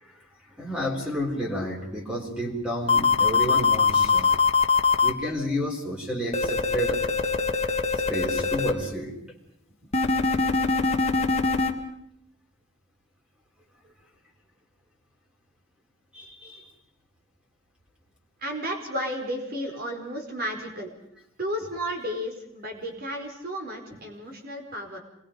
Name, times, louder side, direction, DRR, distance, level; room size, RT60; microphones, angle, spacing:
voice 1, 0.6-4.4 5.0-7.0 8.1-9.2 16.1-16.6, equal, 5° right, -1 dB, 3.9 m, -31 dB
sound 1, 2.9-5.1 6.3-8.7 9.9-11.7, left 4 dB, 30° left, 1.6 m, -22 dB
voice 2, 18.4-20.9 21.4-25.0, equal, 45° right, 2 dB, 4.6 m, -33 dB
27.0 x 21.0 x 5.2 m, 0.76 s
head